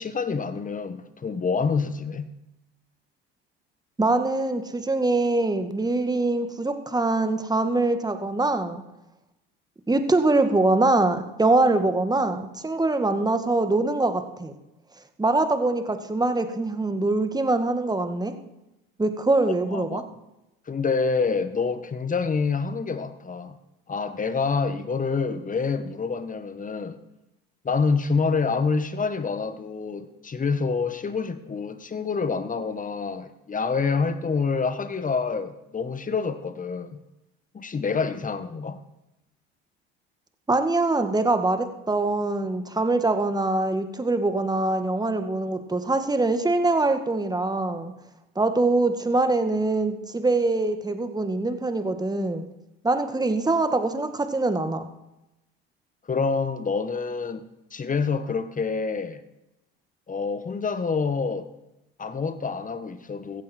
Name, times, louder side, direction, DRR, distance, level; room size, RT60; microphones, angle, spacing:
voice 1, 0.0-2.3 19.7-20.0 20.7-23.6 23.9-27.0 27.6-37.0 37.5-38.8 56.1-57.4 57.7-59.2 60.1-61.5 62.0-63.4, left 5 dB, 25° left, 11 dB, 1.6 m, -27 dB
voice 2, 4.0-8.8 9.9-14.5 15.2-18.3 19.0-20.0 40.5-47.9 48.4-52.5 52.8-54.9, right 2 dB, 15° right, 8 dB, 1.9 m, -23 dB
16.5 x 14.5 x 4.6 m, 0.94 s
hypercardioid pair, 75°, 30 cm